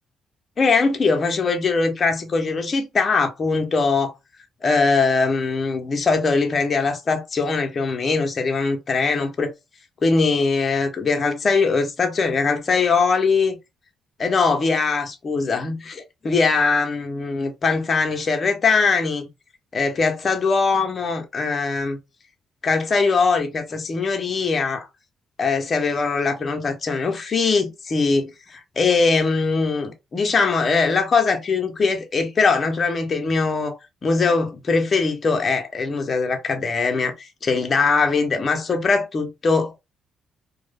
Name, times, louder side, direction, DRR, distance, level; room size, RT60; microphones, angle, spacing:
voice 1, 0.6-4.1 4.6-9.5 10.0-13.6 14.2-19.3 19.7-22.0 22.6-24.9 25.4-39.7, left 4 dB, 40° left, 0.5 m, -21 dB
2.2 x 2.0 x 3.1 m
cardioid pair, 90°, 0 cm